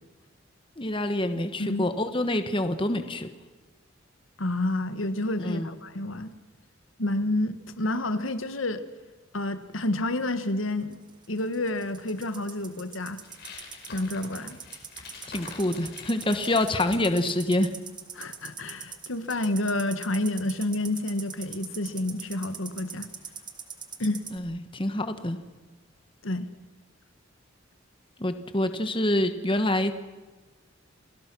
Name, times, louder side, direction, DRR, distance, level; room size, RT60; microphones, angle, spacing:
voice 1, 0.8-3.3 5.4-5.7 15.3-17.7 24.3-25.4 28.2-29.9, left 1 dB, 25° left, 9 dB, 1.3 m, -26 dB
voice 2, 4.4-6.3 7.0-8.8 9.3-11.0 11.3-13.2 13.9-14.6 18.1-23.1 24.0-24.2 26.2-26.5, left 1 dB, 80° left, 10 dB, 1.5 m, -29 dB
sound 1, 10.9-24.4, right 7 dB, 20° right, 1.8 m, -42 dB
sound 2, 13.2-16.9, left 5 dB, 55° left, 5.1 m, -45 dB
29.0 x 19.0 x 6.2 m, 1.3 s
head